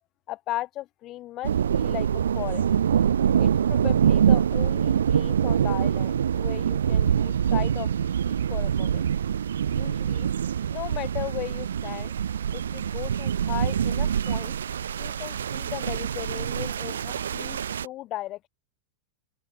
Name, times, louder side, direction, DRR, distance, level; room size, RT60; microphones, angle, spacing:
voice 1, 0.3-2.7 3.4-7.9 8.3-9.1 9.7-10.3 10.7-12.1 12.5-14.6 15.0-18.5, left 15 dB, 35° left, 3.8 m, -36 dB
sound 1, 1.4-17.9, right 8 dB, 65° right, 0.3 m, -25 dB
open air
figure-of-eight pair, 90°, 0 cm